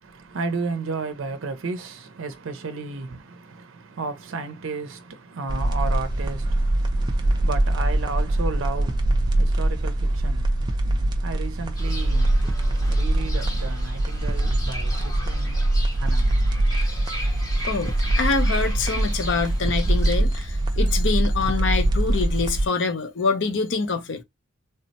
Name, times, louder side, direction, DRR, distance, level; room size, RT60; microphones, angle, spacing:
voice 1, 0.0-16.2, right 4 dB, 75° right, 0.5 m, -34 dB
sound 1, 5.5-22.7, right 1 dB, 20° right, 0.4 m, -23 dB
Fowl / Bird, 11.8-20.2, left 1 dB, 15° left, 0.7 m, -38 dB
voice 2, 17.7-24.2, left 4 dB, 60° left, 0.5 m, -25 dB
3.3 x 2.1 x 2.6 m
head